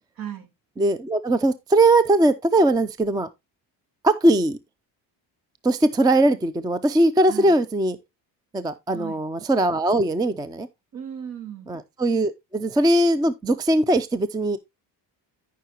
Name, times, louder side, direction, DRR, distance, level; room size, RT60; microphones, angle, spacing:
voice 1, 0.2-0.5 4.3-4.4 7.3-7.6 8.9-9.2 10.9-11.8, right 9 dB, 55° right, 1.9 m, -36 dB
voice 2, 0.8-3.3 4.0-4.6 5.6-8.0 8.5-10.7 11.7-14.6, right 1 dB, 10° right, 0.4 m, -20 dB
13.0 x 5.8 x 2.8 m
cardioid pair, 130°, 42 cm